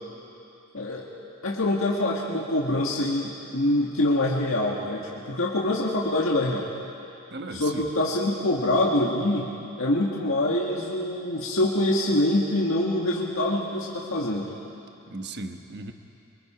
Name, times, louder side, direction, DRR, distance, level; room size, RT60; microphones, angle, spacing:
voice 1, 0.7-1.1 1.4-6.7 7.5-9.5 9.8-14.5, left 1 dB, 70° left, -4 dB, 1.8 m, -25 dB
voice 2, 7.3-7.9 15.1-15.9, right 2 dB, 50° right, 5 dB, 1.2 m, -36 dB
25.0 x 24.0 x 5.1 m, 2.8 s
head